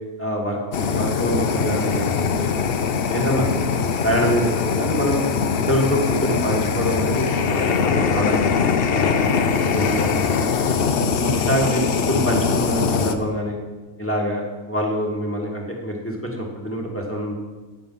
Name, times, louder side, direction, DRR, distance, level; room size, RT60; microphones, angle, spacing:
voice 1, 0.2-0.6 0.9-2.1 2.3-2.5 3.0-5.2 5.7-8.4 8.9-10.5 11.1-13.6 14.0-17.3, equal, 10° left, -1 dB, 1.5 m, -25 dB
Fire, 0.7-13.1, left 6 dB, 60° left, 0.6 m, -22 dB
9.2 x 6.8 x 5.4 m, 1.3 s
omnidirectional pair, 1.6 m